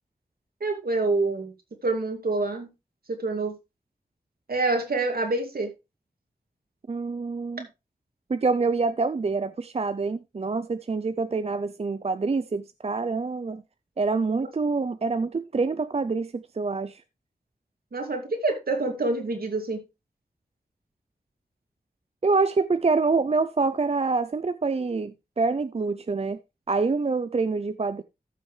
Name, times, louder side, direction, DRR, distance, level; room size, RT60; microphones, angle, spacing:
voice 1, 0.6-1.5 1.8-2.7 3.1-3.5 4.5-5.7 17.9-19.8, right 3 dB, 70° right, 2.5 m, -26 dB
voice 2, 6.9-7.7 8.3-13.6 14.0-17.0 22.2-26.4 26.7-28.0, right 4 dB, 40° right, 0.5 m, -26 dB
14.0 x 6.0 x 3.3 m
wide cardioid pair, 55°, 16 cm